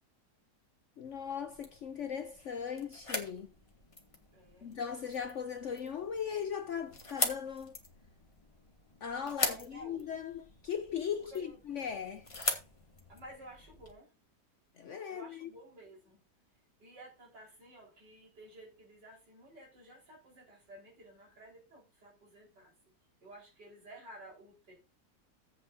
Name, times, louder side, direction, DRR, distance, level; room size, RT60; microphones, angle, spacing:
voice 1, 1.0-3.5 4.6-7.7 9.0-12.3 14.8-15.5, left 7 dB, 60° left, 0.8 m, -38 dB
sound 1, 1.0-13.9, left 2 dB, 20° left, 1.4 m, -41 dB
voice 2, 4.3-4.7 9.4-10.1 11.2-11.6 13.1-14.1 15.1-16.2 16.8-22.7 23.2-24.7, right 1 dB, 75° right, 5.0 m, -53 dB
14.5 x 8.2 x 2.7 m
omnidirectional pair, 1.9 m